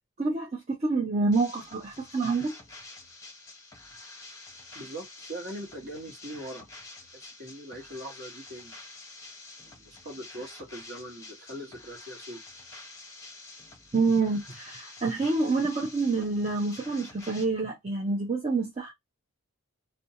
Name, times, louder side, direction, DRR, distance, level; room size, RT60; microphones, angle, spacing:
voice 1, 0.2-2.6 13.9-18.9, right 3 dB, 30° right, 0.5 m, -27 dB
sound 1, 1.3-17.4, left 2 dB, 15° left, 0.8 m, -48 dB
voice 2, 4.7-6.6 7.1-8.8 9.7-12.4, right 1 dB, 50° right, 1.1 m, -41 dB
2.6 x 2.2 x 2.8 m
head